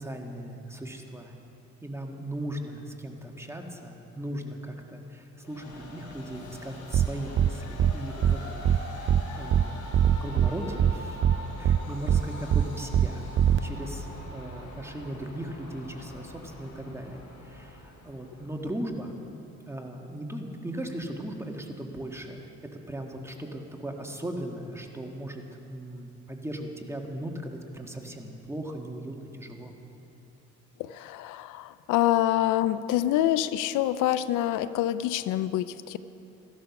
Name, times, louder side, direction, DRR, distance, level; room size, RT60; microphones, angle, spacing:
voice 1, 0.0-1.3 1.8-9.7 10.2-11.2 11.6-13.2 13.6-19.1 19.7-25.4 25.7-29.7, right 1 dB, 10° right, 2 dB, 1.6 m, -38 dB
Train, 5.4-18.9, left 1 dB, 70° left, 3.6 m, -43 dB
sound 1, 6.9-7.1 7.4-7.5 7.8-7.9 8.2-8.4 8.6-8.8 9.1-9.2 9.5-9.6 9.9-10.5 10.8-10.9 11.2-11.4 11.6-11.8 12.1-12.2 12.5-12.6 12.9-13.1 13.4-13.6, right 9 dB, 40° right, 0.4 m, -21 dB
voice 2, 30.8-36.0, left 13 dB, 90° left, 15 dB, 0.5 m, -26 dB
14.0 x 12.5 x 5.9 m, 2.9 s
cardioid pair, 90°, 30 cm